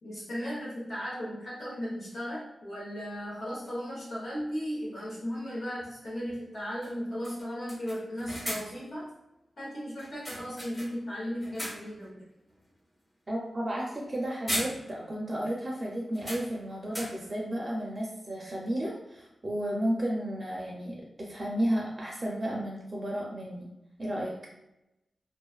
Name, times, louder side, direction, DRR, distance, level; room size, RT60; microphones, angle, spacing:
voice 1, 0.0-9.1 9.6-12.3, equal, 70° left, -8 dB, 0.8 m, -36 dB
sound 1, 3.7-3.8 5.8-5.9 6.3-6.4 6.8-7.0 7.2-8.9 10.0-11.1 11.4-12.1 12.5-12.7 14.0-14.2 14.5-15.2 15.5-15.6 16.1-17.4, equal, 15° left, 0.8 m, -38 dB
voice 2, 13.3-23.7 24.0-24.3, right 1 dB, 35° right, -3 dB, 0.4 m, -33 dB
2.4 x 2.3 x 2.3 m, 0.92 s
wide cardioid pair, 105°, 0 cm